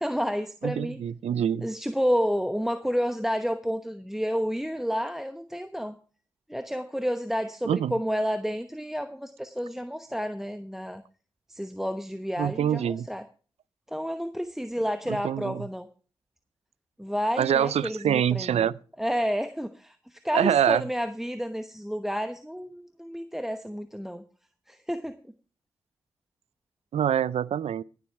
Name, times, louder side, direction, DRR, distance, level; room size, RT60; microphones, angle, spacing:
voice 1, 0.0-1.0 1.6-6.0 6.5-11.0 11.5-13.2 13.9-15.9 17.0-18.7 19.0-24.2 24.7-25.1, equal, 5° right, 1.0 m, -30 dB
voice 2, 0.6-1.7 7.7-7.9 12.4-13.1 15.1-15.7 17.4-18.7 20.3-20.8 26.9-27.8, right 9 dB, 70° right, 0.5 m, -25 dB
17.0 x 7.5 x 4.7 m
supercardioid pair, 45°, 11 cm